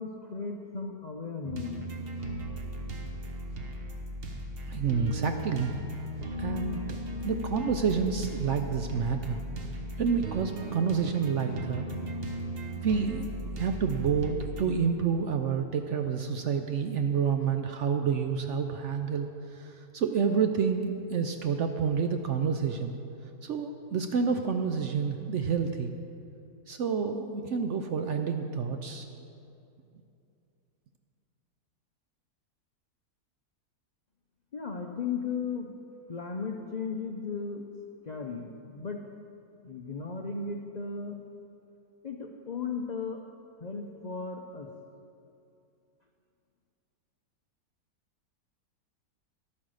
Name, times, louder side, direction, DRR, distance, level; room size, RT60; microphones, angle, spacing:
voice 1, 0.0-1.7 34.5-35.7 36.1-37.6 38.0-39.0 39.6-41.2 42.0-43.2 43.6-44.7, left 5 dB, 60° left, 2 dB, 0.4 m, -36 dB
sound 1, 1.4-14.6, equal, 40° right, 1.1 m, -37 dB
voice 2, 4.7-5.7 6.4-9.4 10.0-11.8 12.8-22.9 23.4-25.9 26.7-29.1, right 6 dB, 65° right, 6 dB, 0.8 m, -29 dB
12.0 x 8.7 x 6.3 m, 2.6 s
omnidirectional pair, 1.7 m